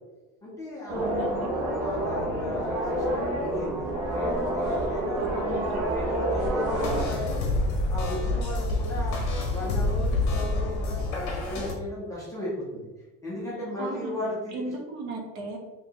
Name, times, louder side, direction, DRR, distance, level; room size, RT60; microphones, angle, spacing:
voice 1, 0.4-5.4 5.7-7.4 7.9-9.2 9.5-12.8 13.2-14.6, left 1 dB, 10° left, -8 dB, 0.5 m, -36 dB
voice 2, 0.9-1.5 5.2-5.8 13.8-15.6, right 2 dB, 40° right, 1 dB, 0.7 m, -36 dB
sound 1, 0.9-7.1, right 1 dB, 80° right, 1.0 m, -28 dB
sound 2, 6.7-11.7, left 2 dB, 45° left, 0.9 m, -27 dB
4.1 x 2.9 x 2.8 m, 1.2 s
cardioid pair, 175°, 39 cm